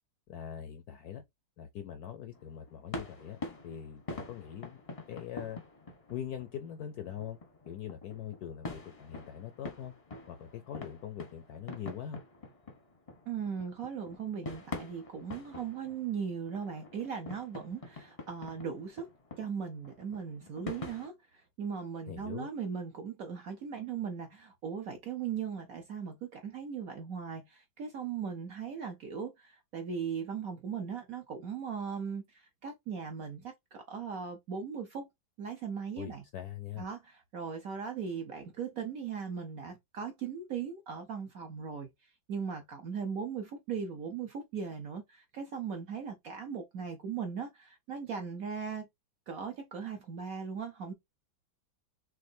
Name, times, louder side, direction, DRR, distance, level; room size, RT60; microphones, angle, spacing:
voice 1, 0.3-1.2 1.6-3.4 3.6-4.8 5.1-5.6 6.1-7.4 7.6-9.9 10.3-12.2 22.1-22.5 36.0-36.9, left 9 dB, 70° left, 0.9 m, -42 dB
sound 1, 2.3-21.1, left 3 dB, 35° left, 0.5 m, -45 dB
voice 2, 13.3-19.1 19.4-35.1 35.4-36.2 36.8-48.9 49.3-50.9, right 6 dB, 65° right, 0.9 m, -38 dB
6.2 x 2.5 x 2.7 m
omnidirectional pair, 2.2 m